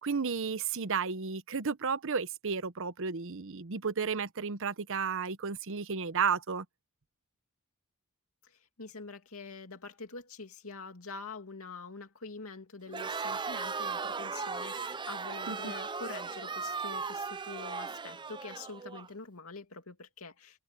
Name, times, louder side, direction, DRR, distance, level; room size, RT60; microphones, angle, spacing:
voice 1, 0.0-6.6 15.5-15.7, right 5 dB, 65° right, 0.9 m, -33 dB
voice 2, 8.4-20.6, left 4 dB, 75° left, 2.6 m, -45 dB
Crowd, 12.9-19.1, right 5 dB, 20° right, 0.5 m, -37 dB
open air
head